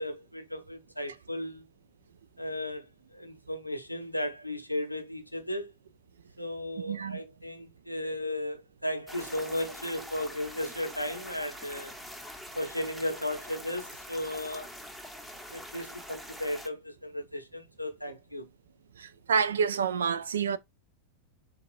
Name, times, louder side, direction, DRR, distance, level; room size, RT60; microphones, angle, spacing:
voice 1, 0.0-1.7 2.4-5.7 6.4-11.9 12.6-14.7 15.5-18.5, left 1 dB, 90° left, 0.7 m, -35 dB
voice 2, 6.9-7.2 19.0-20.6, right 6 dB, 65° right, 0.4 m, -28 dB
sound 1, 9.1-16.7, equal, 5° right, 0.8 m, -44 dB
6.6 x 2.4 x 2.5 m
figure-of-eight pair, 90°, 0 cm